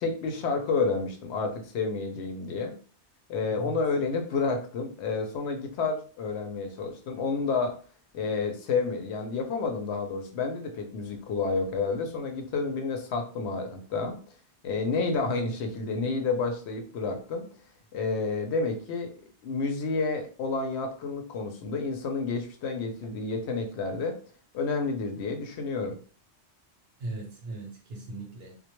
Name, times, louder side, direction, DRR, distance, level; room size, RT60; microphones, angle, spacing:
voice 1, 0.0-2.7 3.3-7.7 8.1-14.2 14.6-17.4 17.9-19.1 19.4-24.1 24.5-26.0, left 4 dB, 75° left, 4 dB, 0.8 m, -30 dB
voice 2, 3.5-3.8 12.0-12.1 27.0-28.6, right 2 dB, 65° right, 2 dB, 0.8 m, -39 dB
2.2 x 2.1 x 2.9 m, 0.40 s
omnidirectional pair, 1.2 m